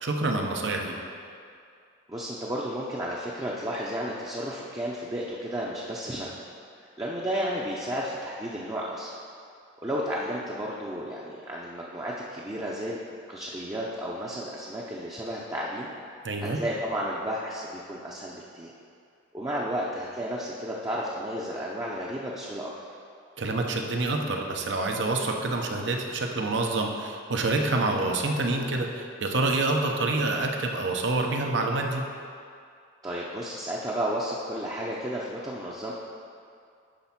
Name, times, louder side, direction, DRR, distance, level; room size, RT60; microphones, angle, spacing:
voice 1, 0.0-1.0 16.2-16.6 23.4-32.0, right 2 dB, 70° right, 2 dB, 0.8 m, -27 dB
voice 2, 2.1-6.4 7.0-9.2 9.8-13.0 13.3-15.9 16.4-18.7 19.3-22.7 33.0-35.9, equal, 20° right, -4 dB, 0.6 m, -32 dB
10.0 x 3.5 x 5.8 m, 2.4 s
head